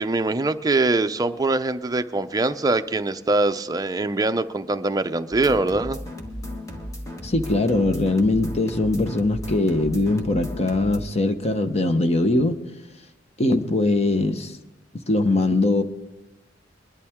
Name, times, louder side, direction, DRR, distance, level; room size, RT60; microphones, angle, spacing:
voice 1, 0.0-6.0, right 2 dB, 20° right, 0.5 m, -23 dB
sound 1, 5.3-11.0, left 1 dB, 15° left, 1.6 m, -35 dB
voice 2, 7.2-12.6 13.4-14.5 15.1-15.8, left 2 dB, 35° left, 0.9 m, -21 dB
22.0 x 11.5 x 3.6 m
head